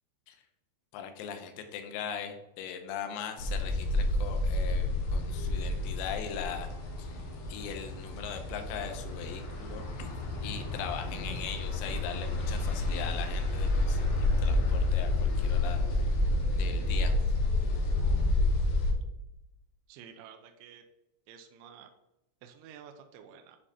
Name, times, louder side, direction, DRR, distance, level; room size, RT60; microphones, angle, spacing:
voice 1, 0.9-6.7 7.0-7.2 7.5-10.1 10.4-16.0 16.5-17.1, left 8 dB, 80° left, 6 dB, 2.6 m, -40 dB
sound 1, 3.4-18.9, left 2 dB, 65° left, 3.3 m, -29 dB
voice 2, 19.9-20.8 21.3-21.9 22.4-23.6, right 8 dB, 85° right, 4 dB, 2.7 m, -51 dB
9.9 x 4.7 x 2.8 m, 0.89 s
omnidirectional pair, 5.8 m